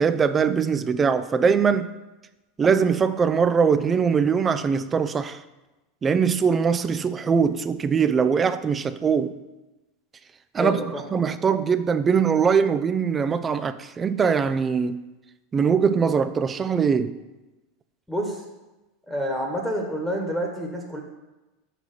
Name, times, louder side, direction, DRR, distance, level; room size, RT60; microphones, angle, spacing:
voice 1, 0.0-1.9 2.6-5.4 6.0-9.4 10.5-10.8 11.1-15.0 15.5-17.2, right 6 dB, 25° right, 0.5 m, -22 dB
voice 2, 10.6-11.0 18.1-18.4 19.1-21.0, equal, 5° left, 1.4 m, -28 dB
5.9 x 5.9 x 6.8 m
figure-of-eight pair, 85°, 0 cm